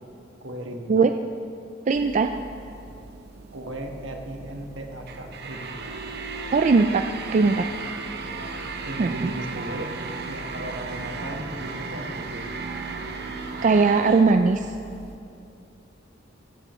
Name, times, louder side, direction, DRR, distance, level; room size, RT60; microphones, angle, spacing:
voice 1, 0.4-1.0 3.5-5.9 8.1-8.5 8.8-9.9 10.3-12.5, right 1 dB, 70° right, 3 dB, 1.4 m, -36 dB
voice 2, 1.9-2.3 6.5-7.7 9.0-9.3 13.6-14.7, right 4 dB, 40° right, 6 dB, 0.3 m, -19 dB
sound 1, 1.9-15.2, right 3 dB, 55° right, 0.8 m, -36 dB
15.5 x 15.0 x 3.1 m, 2.6 s
head